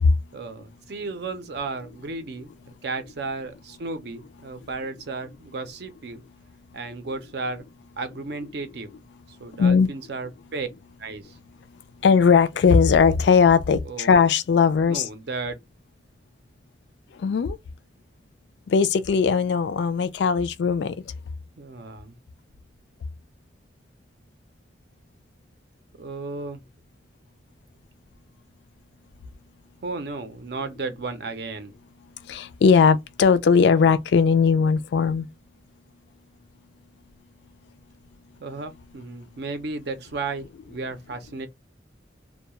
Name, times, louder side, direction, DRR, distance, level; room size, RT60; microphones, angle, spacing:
voice 1, 0.3-2.5 2.8-6.2 6.7-7.7 8.0-8.9 9.4-10.7 11.0-11.4 13.8-14.2 14.9-15.6 21.6-22.1 26.0-26.6 29.8-31.7 38.4-41.5, right 3 dB, 60° right, 0.5 m, -34 dB
voice 2, 9.6-9.9 12.0-15.1 17.2-17.6 18.7-20.9 32.3-35.3, left 5 dB, 70° left, 0.3 m, -19 dB
2.2 x 2.1 x 2.9 m
head